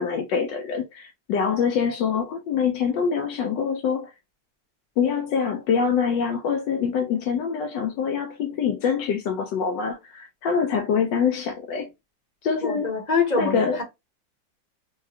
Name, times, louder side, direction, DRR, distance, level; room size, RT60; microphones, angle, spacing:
voice 1, 0.0-4.1 5.0-11.9 12.4-12.9 13.4-13.8, left 6 dB, 75° left, 1.2 m, -25 dB
voice 2, 12.6-13.8, left 4 dB, 30° left, 0.8 m, -25 dB
4.7 x 2.2 x 2.8 m
omnidirectional pair, 2.1 m